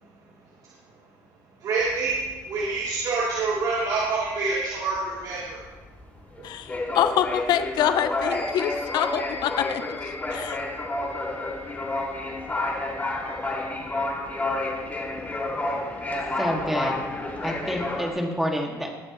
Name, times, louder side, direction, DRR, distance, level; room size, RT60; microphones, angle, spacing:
voice 1, 1.6-2.2 2.5-5.6, right 3 dB, 60° right, -7 dB, 3.3 m, -26 dB
sound 1, 1.8-3.0 3.4-3.6 3.9-18.1, left 2 dB, 25° left, 3.1 m, -30 dB
voice 2, 6.4-10.6, left 10 dB, 70° left, 10 dB, 0.7 m, -26 dB
sound 2, 8.3-17.0, left 1 dB, 30° right, 2.5 m, -45 dB
voice 3, 16.4-17.0 17.4-18.9, equal, 5° right, 0 dB, 2.3 m, -28 dB
20.0 x 8.7 x 3.2 m, 1.2 s
cardioid pair, 100°, 8 cm